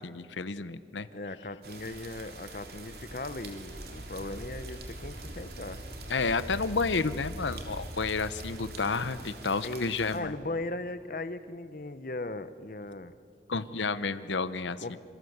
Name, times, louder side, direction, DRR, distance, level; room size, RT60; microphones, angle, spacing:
voice 1, 0.0-1.1 6.1-10.3 13.5-15.0, left 4 dB, 85° left, 14 dB, 0.9 m, -31 dB
voice 2, 1.1-5.9 9.6-13.1 14.8-15.0, left 2 dB, 50° left, 12 dB, 0.9 m, -38 dB
sound 1, 1.6-10.2, right 3 dB, 55° right, 3.5 m, -46 dB
Wind, 2.3-8.6, equal, 90° right, 3.7 m, -46 dB
sound 2, 4.1-9.3, right 1 dB, 20° left, 4.7 m, -47 dB
26.5 x 25.5 x 8.0 m, 2.5 s
head